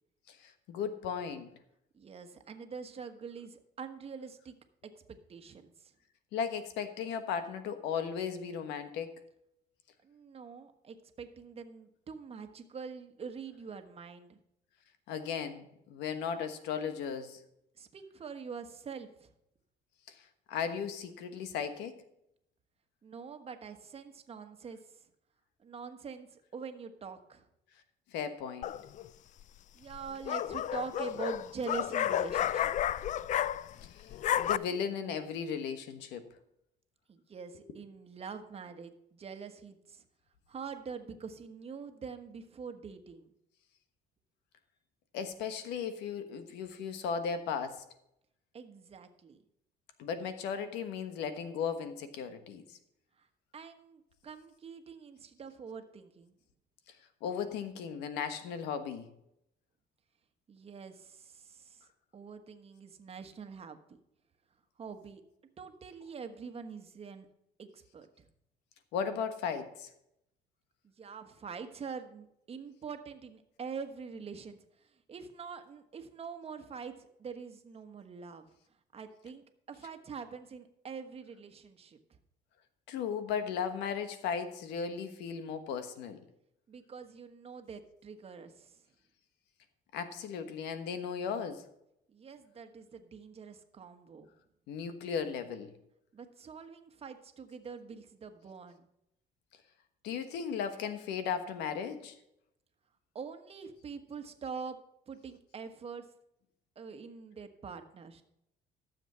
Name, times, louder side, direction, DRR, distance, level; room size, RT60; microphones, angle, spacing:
voice 1, 0.3-1.5 6.3-9.2 15.1-17.4 20.1-20.2 20.5-22.0 28.1-28.7 33.8-34.1 34.4-36.3 45.1-47.8 50.0-52.8 57.2-59.1 68.9-69.9 82.9-86.2 89.9-91.6 94.7-95.7 100.0-102.2, left 7 dB, 90° left, 10 dB, 1.3 m, -36 dB
voice 2, 1.9-4.5 4.9-5.9 10.0-14.4 17.8-19.3 23.0-25.0 25.6-27.5 29.7-32.7 37.1-40.0 40.5-43.3 48.5-49.4 53.2-53.3 53.5-56.3 60.5-61.9 62.1-63.8 64.8-65.2 65.6-67.3 67.6-68.3 70.8-78.4 78.9-82.2 86.7-88.8 92.1-94.3 96.1-98.9 103.1-104.8 105.1-106.0 106.7-108.2, right 5 dB, 35° right, 7 dB, 1.3 m, -45 dB
sound 1, 28.6-29.1 29.9-33.9 34.1-34.6, left 11 dB, 45° left, 0.4 m, -31 dB
12.5 x 7.3 x 5.7 m, 0.80 s
cardioid pair, 110°, 17 cm